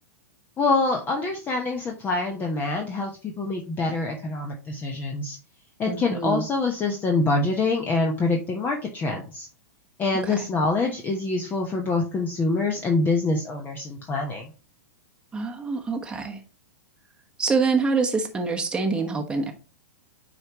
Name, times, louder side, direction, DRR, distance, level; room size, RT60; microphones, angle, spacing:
voice 1, 0.6-5.4 5.8-9.5 10.0-14.5, left 3 dB, 25° left, 2 dB, 1.1 m, -25 dB
voice 2, 5.9-6.5 10.3-10.4 15.3-16.4 17.4-19.5, right 4 dB, 10° right, 3 dB, 1.1 m, -25 dB
9.2 x 4.5 x 3.0 m, 0.34 s
figure-of-eight pair, 105°, 9 cm